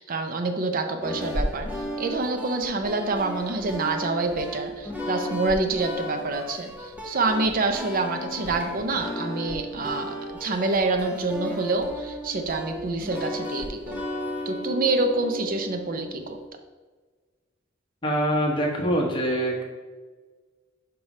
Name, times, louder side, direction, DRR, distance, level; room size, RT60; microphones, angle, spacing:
voice 1, 0.0-1.7 2.0-14.0 14.5-16.4, right 3 dB, 45° right, 6 dB, 0.5 m, -27 dB
sound 1, 1.0-16.5, equal, 10° right, 1.0 m, -35 dB
voice 2, 18.0-19.6, right 1 dB, 25° left, -1 dB, 1.2 m, -24 dB
6.0 x 3.3 x 5.3 m, 1.4 s
head